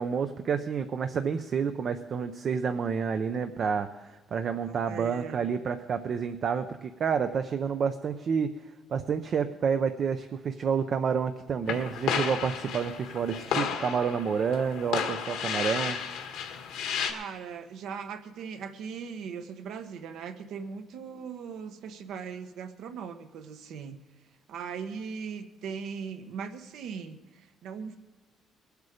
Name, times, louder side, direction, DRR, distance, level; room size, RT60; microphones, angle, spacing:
voice 1, 0.0-3.9 4.3-8.5 8.9-16.0, right 6 dB, 40° right, 8 dB, 0.5 m, -29 dB
voice 2, 4.7-5.5 17.1-24.0 24.5-28.0, right 6 dB, 65° right, 8 dB, 1.0 m, -39 dB
sound 1, 11.7-17.1, left 7 dB, 80° left, 1.5 m, -32 dB
19.5 x 8.1 x 5.0 m, 1.2 s
cardioid pair, 175°, 0 cm